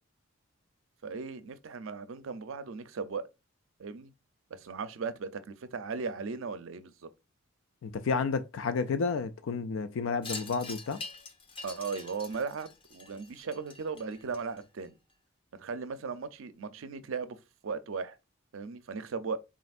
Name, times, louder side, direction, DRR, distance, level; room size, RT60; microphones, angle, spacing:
voice 1, 1.0-3.3 3.8-4.1 4.5-7.1 11.6-14.9 15.5-17.4 17.6-18.2 18.5-19.4, right 5 dB, 75° right, 0.5 m, -37 dB
voice 2, 7.8-11.0, left 4 dB, 75° left, 0.4 m, -31 dB
Wind chime, 10.2-14.9, left 3 dB, 25° left, 0.6 m, -45 dB
4.2 x 3.7 x 2.4 m
head